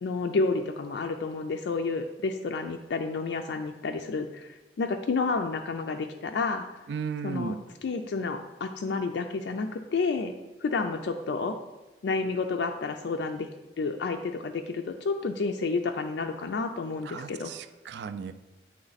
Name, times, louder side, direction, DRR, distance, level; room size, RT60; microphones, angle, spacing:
voice 1, 0.0-6.7 7.2-10.3 10.6-11.6 12.0-13.5 13.8-17.5, left 4 dB, 70° left, 4 dB, 0.4 m, -30 dB
voice 2, 6.9-7.6 17.0-18.3, right 5 dB, 65° right, 11 dB, 0.3 m, -35 dB
7.9 x 3.2 x 4.0 m, 1.1 s
head